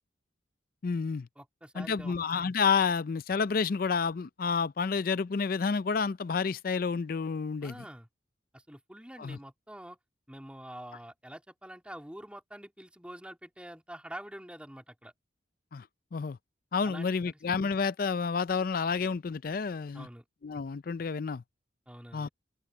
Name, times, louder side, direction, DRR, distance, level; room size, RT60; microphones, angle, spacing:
voice 1, 0.8-1.3 1.8-7.7 9.2-9.4 15.7-15.9 16.1-16.4 16.7-20.1 20.4-21.4 22.1-22.3, left 5 dB, 50° left, 0.4 m, -30 dB
voice 2, 1.4-2.2 7.6-8.1 8.5-10.0 10.3-15.1 16.8-17.4 19.9-20.2 21.9-22.3, right 1 dB, 5° right, 3.0 m, -46 dB
open air
head